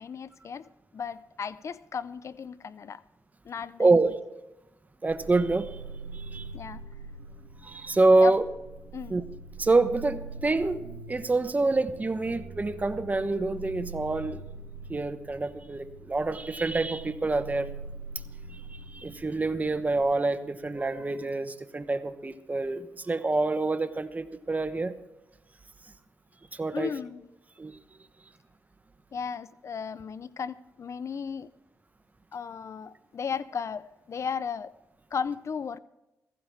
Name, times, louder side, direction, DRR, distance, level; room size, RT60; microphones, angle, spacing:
voice 1, 0.0-3.0 3.4-3.9 6.5-6.8 8.2-8.3 8.9-9.2 26.7-27.3 29.1-31.5 32.3-34.7 35.1-35.8, left 6 dB, 55° left, 0.5 m, -35 dB
voice 2, 3.8-4.2 5.0-5.8 6.1-6.5 7.6-8.4 9.1-9.2 9.6-10.8 11.1-14.4 14.9-17.7 18.9-24.9 26.5-26.9 27.6-27.8, right 3 dB, 25° right, 0.9 m, -26 dB
sound 1, 5.1-20.0, right 3 dB, 75° right, 2.2 m, -43 dB
16.5 x 15.0 x 3.5 m
cardioid pair, 65°, 6 cm